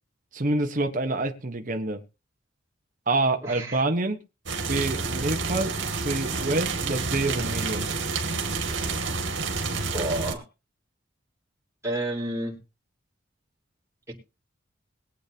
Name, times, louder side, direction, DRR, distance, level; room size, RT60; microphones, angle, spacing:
voice 1, 0.3-2.0 3.1-4.2 4.7-7.9, right 2 dB, 45° right, 5 dB, 1.3 m, -27 dB
voice 2, 3.4-3.8 9.9-10.4 11.8-12.6 14.1-14.2, right 1 dB, 15° right, -4 dB, 4.1 m, -30 dB
sound 1, 4.5-10.3, right 4 dB, 75° right, 2.4 m, -29 dB
22.0 x 8.5 x 2.9 m, 0.30 s
head